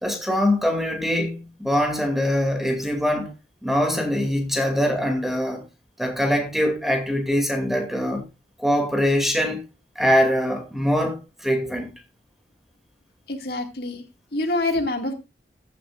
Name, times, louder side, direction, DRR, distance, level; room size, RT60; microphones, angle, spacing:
voice 1, 0.0-3.3 3.6-5.6 6.0-8.2 8.6-9.6 10.0-11.9, equal, ahead, 2.4 m, -23 dB
voice 2, 13.3-14.0 14.3-15.1, left 2 dB, 60° left, 2.0 m, -26 dB
15.0 x 10.5 x 2.4 m
head